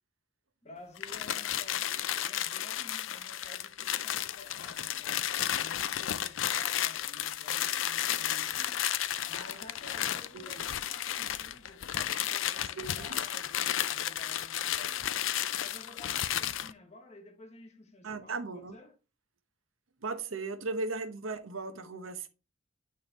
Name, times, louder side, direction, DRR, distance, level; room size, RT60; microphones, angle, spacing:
voice 1, 0.6-5.3 5.6-8.9 9.3-18.9, left 1 dB, 35° left, 1.3 m, -53 dB
sound 1, 1.0-16.7, left 11 dB, 70° left, 0.5 m, -33 dB
voice 2, 12.8-13.2 18.0-18.7 20.0-22.3, right 3 dB, 80° right, 0.9 m, -37 dB
8.9 x 3.5 x 4.0 m
head